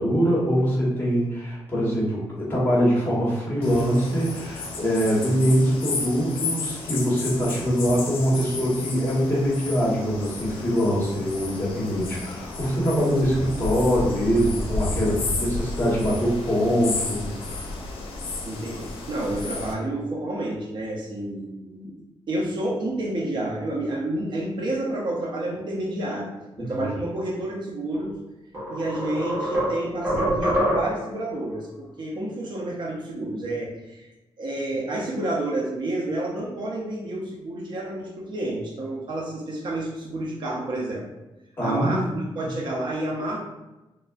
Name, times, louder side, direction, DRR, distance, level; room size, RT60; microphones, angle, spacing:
voice 1, 0.0-17.7 26.6-26.9 41.6-42.2 42.4-42.5, equal, 20° left, -7 dB, 1.2 m, -23 dB
sound 1, 3.6-19.7, left 3 dB, 70° left, 0.5 m, -32 dB
voice 2, 18.4-21.9 22.3-26.3 26.6-28.2 28.7-34.1 34.4-41.1 41.6-43.4, right 1 dB, 55° right, -2 dB, 0.6 m, -29 dB
sound 2, 28.0-28.1 28.5-31.1, equal, 20° right, 1.1 m, -25 dB
3.2 x 2.5 x 2.3 m, 1.0 s
wide cardioid pair, 130°, 9 cm